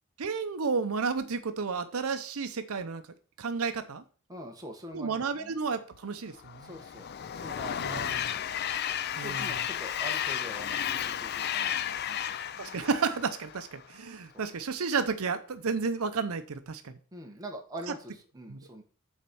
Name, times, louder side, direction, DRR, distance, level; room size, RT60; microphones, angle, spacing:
voice 1, 0.2-3.0 3.4-4.0 4.9-6.7 7.8-8.1 9.2-9.5 12.6-16.9 18.5-18.6, right 5 dB, 75° right, 10 dB, 0.6 m, -32 dB
voice 2, 4.3-5.5 6.6-7.0 7.3-8.4 9.2-12.8 17.1-18.8, right 1 dB, 15° right, 2 dB, 1.4 m, -44 dB
Train, 6.4-13.9, left 9 dB, 45° left, 0.4 m, -33 dB
7.3 x 4.3 x 6.9 m, 0.40 s
head